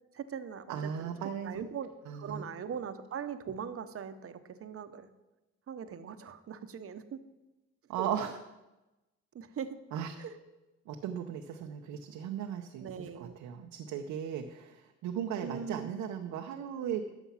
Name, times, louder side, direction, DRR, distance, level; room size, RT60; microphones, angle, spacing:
voice 1, 0.1-1.1 1.4-5.1 5.7-7.2 8.0-8.1 9.3-9.8 10.2-10.3 12.8-13.3 15.4-15.9, right 7 dB, 50° right, 11 dB, 0.9 m, -40 dB
voice 2, 0.7-1.6 2.1-2.4 7.9-8.4 9.9-10.2 10.9-17.0, right 9 dB, 90° right, 4 dB, 0.8 m, -37 dB
12.0 x 7.1 x 5.7 m, 1.0 s
cardioid pair, 90°, 30 cm